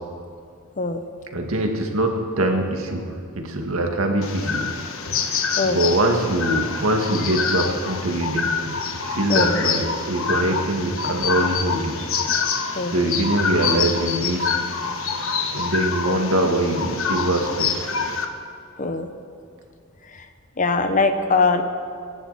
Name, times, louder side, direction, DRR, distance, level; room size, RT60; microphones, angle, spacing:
voice 1, 1.3-4.6 5.6-8.5 9.0-11.9 12.9-14.6 15.5-17.7, right 1 dB, 85° right, 2 dB, 2.0 m, -23 dB
sound 1, 4.2-18.2, left 5 dB, 75° left, 1.2 m, -26 dB
voice 2, 5.5-6.0 9.3-9.6 12.8-13.1 16.0-16.2 18.8-19.1 20.1-20.3 20.6-21.6, left 3 dB, 35° left, 7 dB, 0.9 m, -22 dB
28.0 x 11.0 x 4.2 m, 2.3 s
head